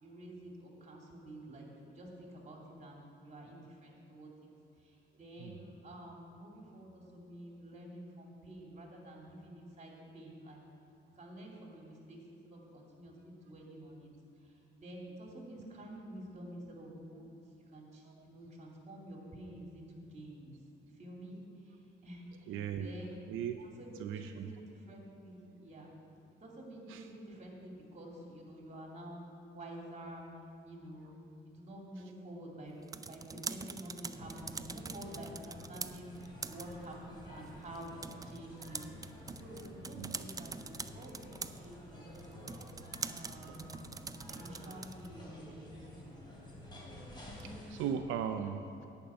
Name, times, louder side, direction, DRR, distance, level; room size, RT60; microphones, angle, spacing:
voice 1, 0.0-4.3 5.1-10.6 11.2-12.2 12.4-14.1 14.8-17.4 17.7-20.5 20.8-21.4 22.0-22.2 22.5-23.1 23.6-25.9 26.4-30.3 30.7-31.1 31.4-32.7 33.0-33.2 33.5-36.1 36.5-38.8 39.3-42.6 43.0-43.8 44.3-45.8 46.0-46.3, right 1 dB, 35° right, -1 dB, 2.6 m, -49 dB
voice 2, 22.5-23.0 23.3-23.7 24.0-24.5 26.9-27.1 32.0-32.1 39.9-40.1 43.5-43.6 47.4-48.9, right 8 dB, 90° right, 6 dB, 0.5 m, -38 dB
sound 1, 32.7-45.2, right 4 dB, 20° right, 0.4 m, -45 dB
sound 2, 34.1-47.9, left 1 dB, 25° left, 3.0 m, -51 dB
10.5 x 5.4 x 8.5 m, 2.6 s
cardioid pair, 90°, 20 cm